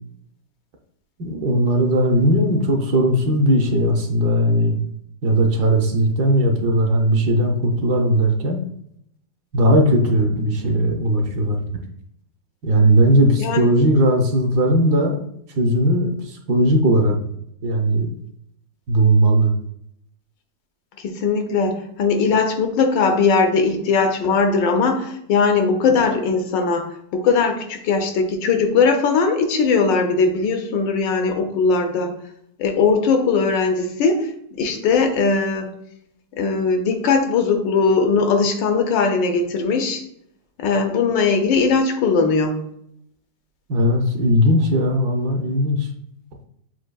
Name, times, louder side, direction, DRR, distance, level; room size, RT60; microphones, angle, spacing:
voice 1, 1.2-4.8 5.2-8.6 9.5-11.6 12.6-15.2 15.6-17.2 17.6-18.1 18.9-19.5 43.7-45.9, right 1 dB, 70° right, 2 dB, 1.2 m, -18 dB
voice 2, 21.0-26.9 27.1-32.1 32.6-34.3 34.6-35.7 36.4-40.0 40.6-42.6, left 4 dB, 90° left, 5 dB, 1.4 m, -19 dB
7.5 x 2.6 x 2.2 m, 0.72 s
omnidirectional pair, 1.9 m